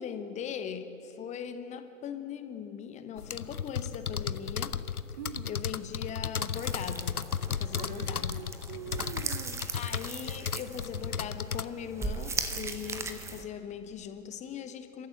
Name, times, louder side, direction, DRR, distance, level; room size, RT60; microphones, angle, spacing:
voice 1, 0.0-4.8 5.4-7.2 7.5-8.4 9.7-15.1, left 8 dB, 15° left, 9 dB, 1.0 m, -40 dB
sound 1, 3.2-11.6, left 7 dB, 85° left, 0.7 m, -34 dB
voice 2, 5.2-5.6 7.5-9.7, right 9 dB, 30° right, 11 dB, 0.6 m, -44 dB
sound 2, 6.5-13.4, right 3 dB, 5° right, 0.8 m, -39 dB
29.5 x 13.5 x 7.8 m, 2.9 s
figure-of-eight pair, 110°, 43 cm